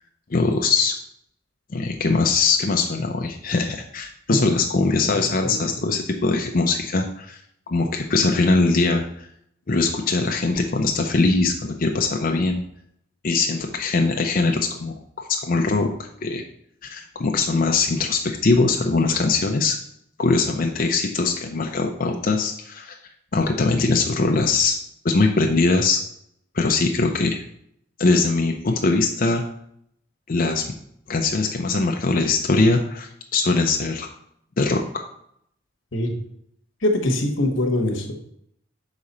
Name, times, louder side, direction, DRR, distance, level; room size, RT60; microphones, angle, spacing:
voice 1, 0.3-1.0 1.7-7.4 7.7-9.1 9.7-12.6 13.2-16.4 16.8-19.8 20.2-23.0 23.3-24.8 25.0-26.0 26.5-27.4 28.0-29.5 30.3-30.6 31.1-34.1 34.6-35.0, left 3 dB, 45° left, 3 dB, 0.5 m, -21 dB
voice 2, 35.9-36.2 36.8-38.1, left 1 dB, 75° left, 2 dB, 1.1 m, -23 dB
6.3 x 4.9 x 4.1 m, 0.72 s
head